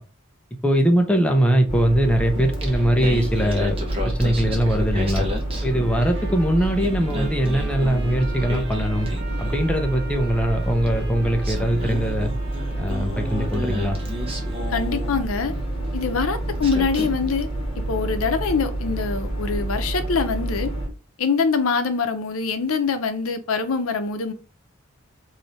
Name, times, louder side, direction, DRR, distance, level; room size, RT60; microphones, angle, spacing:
voice 1, 0.6-3.8 4.0-5.3 5.6-9.1 9.4-12.3 12.8-14.0, equal, 5° left, 0.6 m, -21 dB
sound 1, 1.7-20.9, right 1 dB, 25° left, 1.7 m, -28 dB
Singing, 2.4-6.3 6.6-9.8 10.9-11.0 11.4-15.6 16.2-16.3 16.6-17.4, left 1 dB, 25° right, 0.9 m, -33 dB
Trumpet, 5.7-14.7, right 4 dB, 55° right, 0.9 m, -43 dB
voice 2, 14.7-15.5 15.9-17.5 17.7-20.7 21.2-24.3, left 5 dB, 85° left, 0.6 m, -24 dB
3.2 x 2.7 x 4.1 m
head